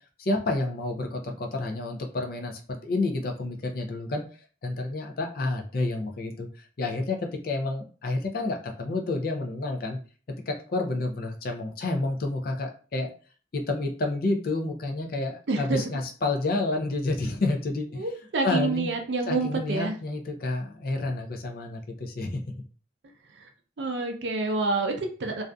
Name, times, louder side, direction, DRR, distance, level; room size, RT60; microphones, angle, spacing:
voice 1, 0.2-4.3 4.6-10.0 10.5-13.1 13.5-18.0 18.4-18.9 19.3-22.5, left 2 dB, 55° left, 4 dB, 0.4 m, -29 dB
voice 2, 15.5-16.0 17.9-20.0 23.3-23.5 23.8-25.4, right 3 dB, 70° right, 4 dB, 0.5 m, -28 dB
2.6 x 2.4 x 2.2 m, 0.39 s
head